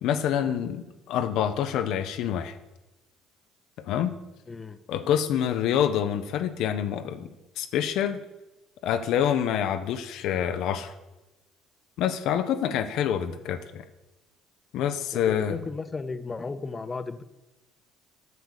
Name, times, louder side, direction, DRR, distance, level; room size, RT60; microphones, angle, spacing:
voice 1, 0.0-2.5 3.9-4.1 4.9-7.3 7.6-8.2 8.8-10.9 12.0-13.8 14.7-15.6, left 9 dB, 70° left, 9 dB, 0.6 m, -26 dB
voice 2, 4.5-4.8 15.1-17.2, left 4 dB, 30° left, 12 dB, 0.7 m, -35 dB
8.2 x 7.0 x 6.5 m, 1.1 s
hypercardioid pair, 60°, 0 cm